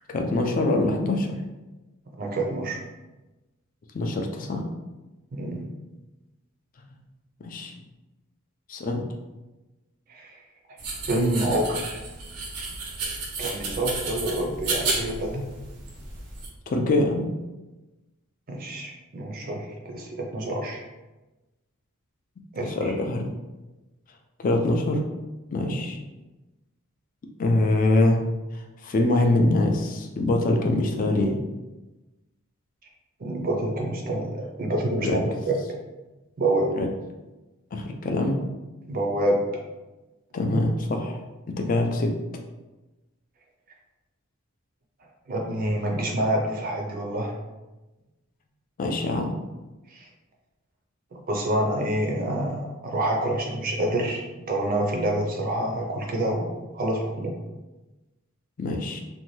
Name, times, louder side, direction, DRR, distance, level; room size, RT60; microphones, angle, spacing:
voice 1, 0.1-1.4 3.9-4.7 7.4-7.7 8.7-9.0 16.7-17.3 22.7-23.3 24.4-25.0 25.5-26.0 27.4-28.2 28.5-31.4 35.0-35.2 36.8-36.9 37.7-38.4 40.3-41.2 41.6-42.1 48.8-49.3 58.6-59.0, left 2 dB, 35° left, 3 dB, 0.3 m, -24 dB
voice 2, 2.2-2.8 5.3-5.6 10.1-10.4 11.1-12.0 13.4-15.5 18.5-20.8 22.5-22.9 25.7-25.8 33.2-35.6 36.4-36.7 38.8-39.4 45.3-47.3 49.9-50.1 51.1-57.4, right 1 dB, 40° right, 1 dB, 0.4 m, -27 dB
sound 1, 10.8-16.5, right 3 dB, 90° right, 0.6 m, -32 dB
2.6 x 2.2 x 3.1 m, 1.1 s
head